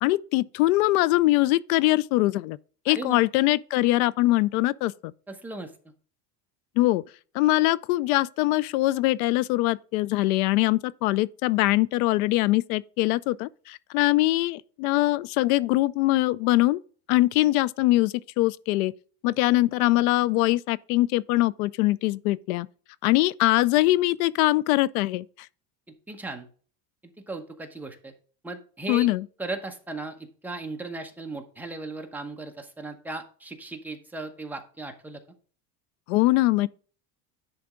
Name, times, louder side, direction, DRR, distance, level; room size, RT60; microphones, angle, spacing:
voice 1, 0.0-2.6 2.9-4.9 6.8-7.0 7.3-16.8 17.1-18.9 19.2-22.7 23.0-25.3 28.9-29.2 36.1-36.7, left 18 dB, 90° left, 0.5 m, -22 dB
voice 2, 2.9-3.2 5.3-5.7 26.1-26.5 27.2-28.1 28.4-29.1 29.4-35.2, right 2 dB, 5° right, 0.9 m, -37 dB
10.5 x 3.5 x 5.1 m
cardioid pair, 140°, 41 cm